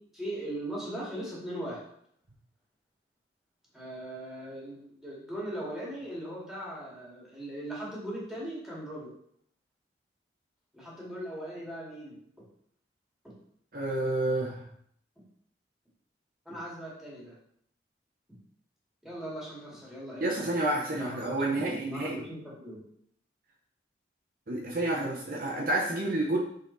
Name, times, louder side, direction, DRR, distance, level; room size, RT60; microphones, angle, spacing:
voice 1, 0.1-1.8 3.7-9.1 10.7-12.2 13.2-13.3 15.2-15.3 16.5-17.4 19.0-20.5 20.9-22.8, right 1 dB, ahead, -6 dB, 2.2 m, -39 dB
voice 2, 13.7-14.7 20.2-22.3 24.5-26.4, right 2 dB, 50° right, -1 dB, 0.9 m, -29 dB
6.5 x 4.2 x 4.0 m, 0.67 s
head